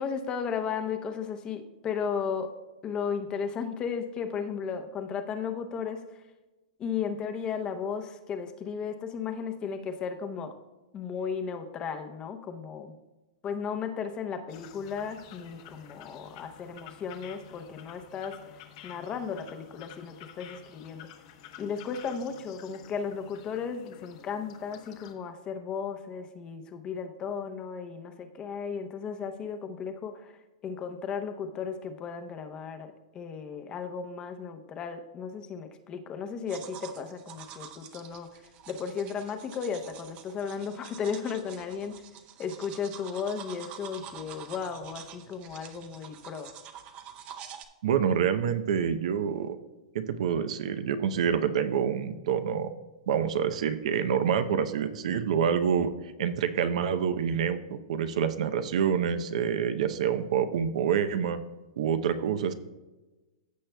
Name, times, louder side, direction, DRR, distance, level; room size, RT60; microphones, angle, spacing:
voice 1, 0.0-2.5 2.8-6.2 6.8-10.6 10.9-12.9 13.4-21.1 21.6-42.0 42.4-46.6, left 6 dB, 25° left, 7 dB, 0.7 m, -35 dB
sound 1, 14.5-25.1, left 9 dB, 50° left, 1.0 m, -50 dB
sound 2, 36.5-47.6, right 8 dB, 30° right, 0.6 m, -47 dB
voice 2, 47.8-49.6 49.9-52.7 53.1-55.9 56.2-61.4 61.8-62.5, right 7 dB, 65° right, 10 dB, 0.7 m, -27 dB
15.0 x 6.5 x 2.2 m, 1.1 s
hypercardioid pair, 145°, 4 cm